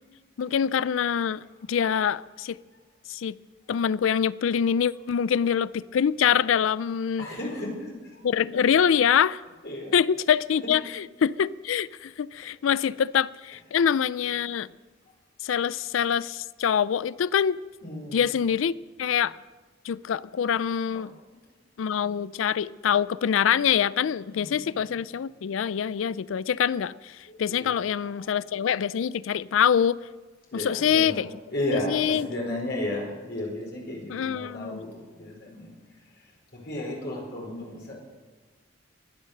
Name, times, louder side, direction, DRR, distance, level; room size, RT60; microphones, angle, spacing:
voice 1, 0.4-1.4 1.7-2.6 3.1-3.4 3.7-7.3 8.2-9.4 9.9-14.7 15.4-17.6 18.1-19.4 19.8-21.1 21.8-30.0 30.5-31.3 31.7-32.3 34.1-34.8, left 8 dB, 80° left, 0.4 m, -25 dB
voice 2, 7.2-8.3 9.6-10.0 10.5-10.7 17.8-18.3 20.9-21.0 24.2-24.9 27.3-28.3 30.5-31.2 31.5-35.7 36.5-37.9, left 1 dB, 60° left, 4.6 m, -34 dB
22.5 x 9.8 x 6.6 m
head